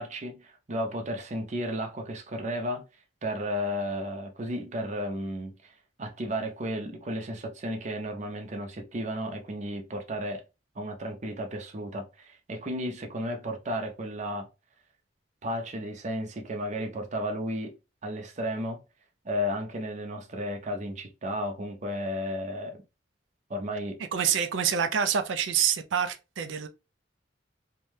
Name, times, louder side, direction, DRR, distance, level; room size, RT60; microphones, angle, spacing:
voice 1, 0.0-2.8 3.2-5.7 6.0-10.4 10.8-14.5 15.4-17.7 18.0-18.8 19.2-22.8 23.5-24.0, equal, 40° right, 0.6 m, -33 dB
voice 2, 24.1-26.7, right 8 dB, 90° right, 0.4 m, -26 dB
2.6 x 2.2 x 3.1 m
head